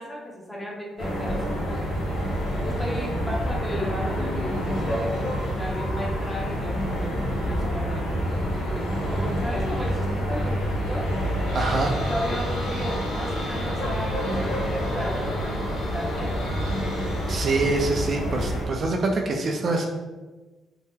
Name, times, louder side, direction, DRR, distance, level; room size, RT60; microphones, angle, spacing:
voice 1, 0.0-2.0 2.6-11.1 12.0-16.7, equal, 10° left, -3 dB, 0.8 m, -35 dB
sound 1, 1.0-18.7, equal, 80° left, 0.8 m, -27 dB
voice 2, 11.5-11.9 17.3-19.9, right 3 dB, 50° right, 2 dB, 0.4 m, -25 dB
2.7 x 2.1 x 3.5 m, 1.2 s
cardioid pair, 90°, 0 cm